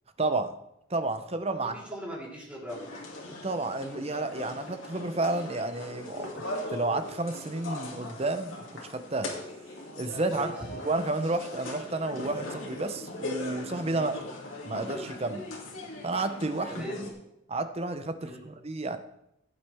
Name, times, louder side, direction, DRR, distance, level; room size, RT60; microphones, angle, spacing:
voice 1, 0.2-0.5 0.9-1.8 3.4-6.4 6.7-9.3 10.0-10.5 10.8-14.1 14.6-15.4 16.0-17.1 17.5-19.0, right 2 dB, 30° right, 9 dB, 0.7 m, -31 dB
voice 2, 1.6-3.0 10.3-10.5 13.9-14.1 16.7-17.1 18.2-18.4, equal, 5° right, -6 dB, 3.7 m, -40 dB
sound 1, 2.7-17.1, left 2 dB, 90° left, 2.5 m, -40 dB
15.5 x 8.3 x 3.5 m, 0.82 s
head